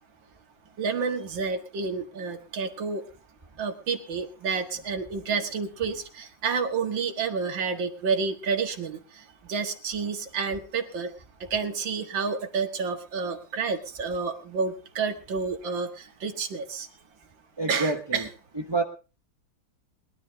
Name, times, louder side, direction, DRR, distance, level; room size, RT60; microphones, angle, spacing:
voice 1, 0.8-3.0 3.6-9.2 9.5-11.1 11.5-16.9 17.7-18.3, right 5 dB, 65° right, 5 dB, 2.4 m, -29 dB
voice 2, 17.6-18.3 18.7-18.8, right 3 dB, 20° right, 3 dB, 0.6 m, -27 dB
21.5 x 12.0 x 3.5 m, 0.34 s
omnidirectional pair, 2.3 m